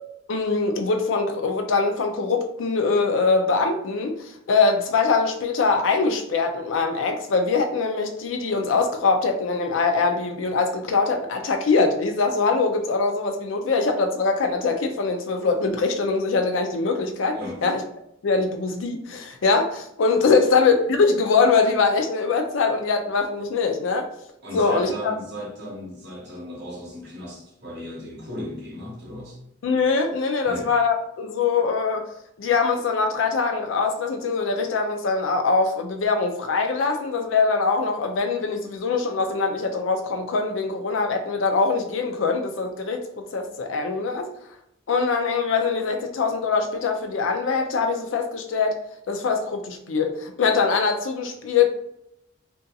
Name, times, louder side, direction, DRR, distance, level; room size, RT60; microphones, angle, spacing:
voice 1, 0.3-17.8 18.2-24.1 24.5-25.1 29.6-32.0 32.4-43.1 43.3-44.3 44.9-48.8 49.1-51.7, left 4 dB, 90° left, 5 dB, 0.4 m, -23 dB
voice 2, 17.3-17.7 20.2-20.4 24.4-29.4 30.4-30.7, equal, 60° right, -2 dB, 0.9 m, -36 dB
2.6 x 2.6 x 2.3 m, 0.78 s
head